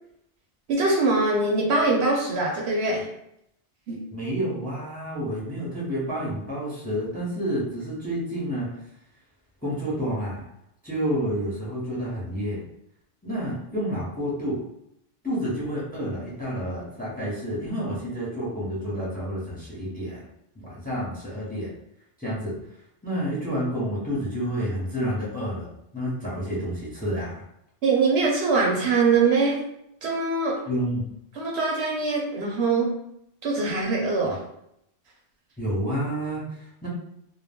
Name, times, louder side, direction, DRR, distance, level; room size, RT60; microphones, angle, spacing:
voice 1, 0.7-3.1 3.9-4.0 27.8-29.6 30.0-30.6 31.4-32.9 33.4-34.4, right 3 dB, 70° right, -2 dB, 0.9 m, -23 dB
voice 2, 4.1-8.8 9.6-10.4 10.8-12.6 13.2-14.6 15.2-20.2 20.5-21.7 22.2-22.6 23.0-25.7 25.9-27.4 30.7-31.1 35.6-36.9, equal, 10° left, -6 dB, 0.7 m, -29 dB
2.3 x 2.1 x 3.4 m, 0.77 s
omnidirectional pair, 1.2 m